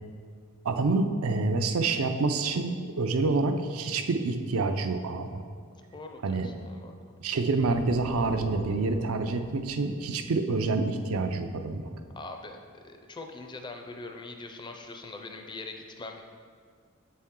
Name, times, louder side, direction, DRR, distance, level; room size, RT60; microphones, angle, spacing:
voice 1, 0.6-5.4 6.2-6.5 7.2-11.8, right 3 dB, 80° right, 7 dB, 0.5 m, -27 dB
voice 2, 5.9-7.1 12.1-16.2, left 3 dB, 20° left, 4 dB, 0.5 m, -42 dB
sound 1, 7.6-11.4, left 1 dB, 60° left, 0.9 m, -44 dB
7.5 x 4.3 x 3.6 m, 2.1 s
head